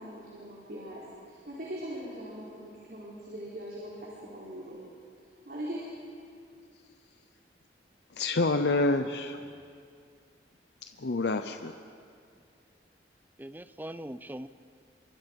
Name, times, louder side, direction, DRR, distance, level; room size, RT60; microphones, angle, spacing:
voice 1, 0.0-4.8 5.5-5.9, equal, 55° right, -6 dB, 4.2 m, -41 dB
voice 2, 8.1-9.4 11.0-11.7, left 2 dB, 70° left, 7 dB, 0.7 m, -27 dB
voice 3, 13.4-14.5, right 1 dB, 10° right, 13 dB, 0.5 m, -43 dB
27.0 x 23.5 x 5.4 m, 2.3 s
head